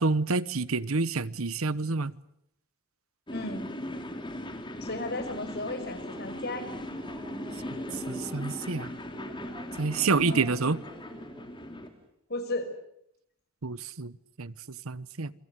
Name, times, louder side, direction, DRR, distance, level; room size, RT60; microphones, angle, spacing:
voice 1, 0.0-2.1 7.9-9.0 9.8-10.8 13.6-15.3, right 3 dB, 85° right, 18 dB, 1.1 m, -28 dB
voice 2, 3.3-3.7 4.8-6.7 10.2-10.6 12.3-12.7, left 2 dB, 50° left, 8 dB, 5.8 m, -34 dB
sound 1, 3.3-11.9, left 1 dB, 25° left, 3.0 m, -39 dB
sound 2, 5.7-12.1, right 1 dB, 25° right, 3.7 m, -49 dB
28.0 x 24.5 x 8.2 m, 0.75 s
head